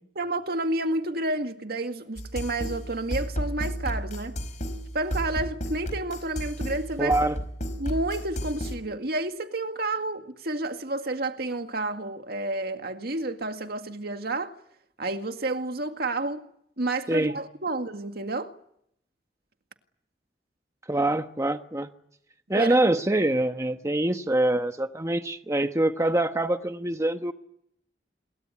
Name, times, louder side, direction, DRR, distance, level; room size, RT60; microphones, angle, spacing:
voice 1, 0.2-4.4 4.9-7.1 7.8-14.5 15.0-16.5 16.8-18.5 22.6-22.8, right 2 dB, 60° right, 2.0 m, -30 dB
sound 1, 2.2-8.8, equal, 45° left, 4.9 m, -33 dB
voice 2, 7.0-7.4 17.1-17.3 20.9-21.9 22.5-27.3, right 1 dB, 20° right, 1.1 m, -24 dB
27.5 x 22.0 x 9.8 m
head